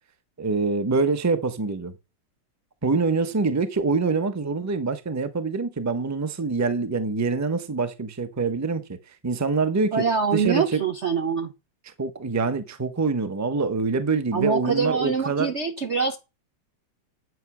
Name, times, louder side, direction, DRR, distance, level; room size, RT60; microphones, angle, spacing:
voice 1, 0.4-1.9 2.8-9.0 9.2-10.0 10.3-10.8 12.0-15.5, right 4 dB, 15° right, 0.7 m, -25 dB
voice 2, 9.9-11.5 14.3-16.2, right 5 dB, 50° right, 0.8 m, -24 dB
9.4 x 8.4 x 6.2 m
omnidirectional pair, 2.3 m